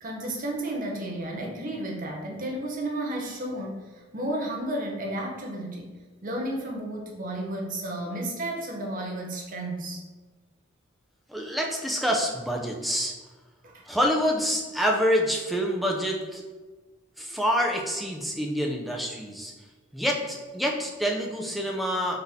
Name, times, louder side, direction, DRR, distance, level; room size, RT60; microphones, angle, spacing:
voice 1, 0.0-5.9 6.2-10.0 13.6-13.8, right 1 dB, 40° right, 0 dB, 0.6 m, -32 dB
voice 2, 11.3-13.1 13.9-16.4 17.2-19.5 19.9-22.2, equal, ahead, -1 dB, 0.4 m, -27 dB
4.0 x 3.4 x 2.7 m, 1.3 s
head